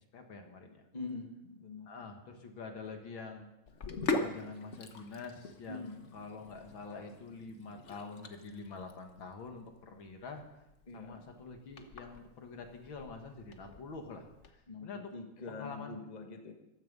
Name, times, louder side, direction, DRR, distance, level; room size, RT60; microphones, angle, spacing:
voice 1, 0.1-0.8 1.9-3.5 4.1-10.4 10.9-14.3 14.8-15.1 15.5-16.0, left 4 dB, 65° left, 4 dB, 2.4 m, -46 dB
voice 2, 0.9-1.9 5.7-6.0 10.9-11.3 14.7-16.5, left 3 dB, 20° left, 4 dB, 1.3 m, -44 dB
Sink (filling or washing), 3.7-14.5, left 3 dB, 45° left, 1.1 m, -42 dB
15.0 x 13.5 x 5.4 m, 0.92 s
omnidirectional pair, 2.4 m